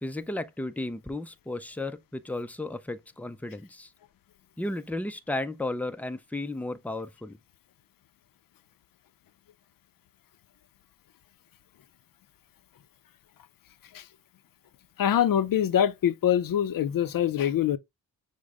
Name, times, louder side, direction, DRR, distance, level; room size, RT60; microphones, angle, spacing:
voice 1, 0.0-3.9 4.6-7.4, left 2 dB, 5° left, 0.5 m, -34 dB
voice 2, 15.0-17.8, left 10 dB, 60° left, 0.6 m, -24 dB
6.3 x 2.1 x 3.5 m
cardioid pair, 60°, 38 cm